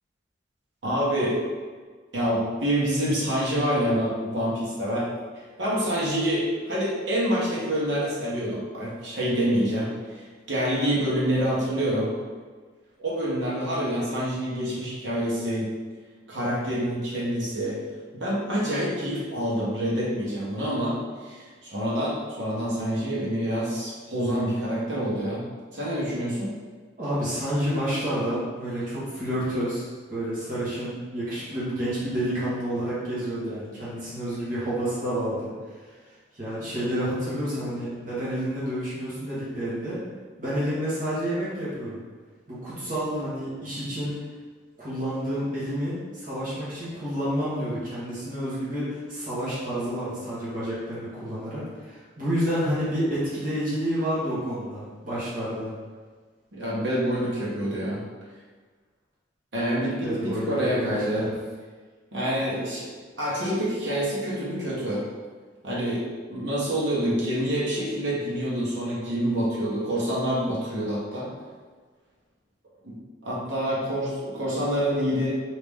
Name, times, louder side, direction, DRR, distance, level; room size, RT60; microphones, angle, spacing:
voice 1, 0.8-1.4 2.1-5.1 5.6-12.1 13.0-15.7 16.3-17.8 18.1-21.0 21.2-25.4 25.7-26.5 56.5-58.0 59.5-61.3 62.1-62.9 63.2-65.0 65.6-71.3 72.8-73.0 73.2-75.3, equal, 80° right, -6 dB, 1.2 m, -27 dB
voice 2, 27.0-35.5 36.3-40.0 40.4-42.0 42.5-44.1 44.8-55.7 60.0-61.3, equal, 50° right, -10 dB, 1.4 m, -29 dB
3.2 x 2.9 x 3.5 m, 1.5 s
head